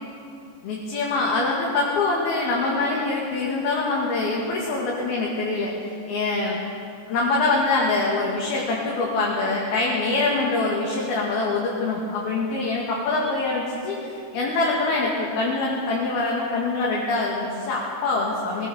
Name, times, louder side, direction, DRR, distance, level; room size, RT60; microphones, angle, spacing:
voice 1, 0.6-6.6 7.1-18.7, left 3 dB, 60° left, -4 dB, 3.8 m, -24 dB
20.5 x 20.0 x 7.1 m, 2.6 s
omnidirectional pair, 5.5 m